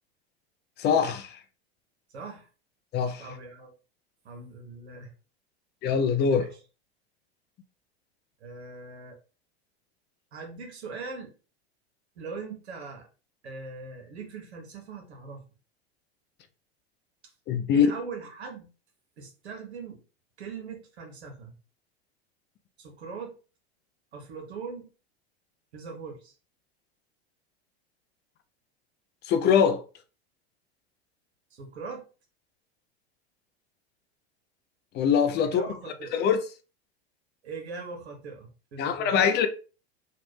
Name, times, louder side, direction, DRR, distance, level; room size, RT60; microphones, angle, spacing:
voice 1, 0.8-1.4 2.9-3.3 5.8-6.5 17.5-17.9 29.3-29.8 34.9-35.6 36.1-36.4 38.8-39.5, left 7 dB, 35° left, 0.5 m, -23 dB
voice 2, 2.1-2.5 3.2-3.7 4.2-5.1 6.2-6.5 8.4-9.2 10.3-11.3 12.2-13.1 13.4-15.4 17.7-18.7 19.2-20.0 20.4-21.6 22.8-23.4 24.1-24.9 25.7-26.3 31.5-32.0 35.4-36.1 37.4-39.2, right 4 dB, 80° right, 1.3 m, -40 dB
3.3 x 2.4 x 3.2 m
hypercardioid pair, 95°, 32 cm